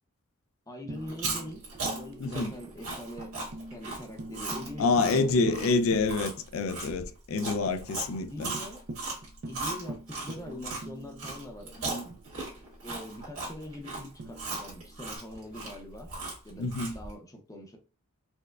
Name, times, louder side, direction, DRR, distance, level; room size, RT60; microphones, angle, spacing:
voice 1, 0.7-1.6 1.9-3.3 3.7-5.8 7.4-7.6 8.1-8.8 9.4-12.2 12.8-16.1 16.4-17.8, left 1 dB, 15° left, 0.6 m, -43 dB
Tambourine, 0.9-6.6 6.9-7.0 7.3-7.8 8.1-8.2 8.5-12.7 14.2-15.2, right 2 dB, 50° right, 0.4 m, -44 dB
Chewing mastication, 1.0-10.8 11.2-17.1, right 3 dB, 85° right, 1.7 m, -37 dB
voice 2, 2.2-2.5 4.8-8.5 16.6-16.9, left 3 dB, 70° left, 0.4 m, -27 dB
4.5 x 2.1 x 2.3 m
head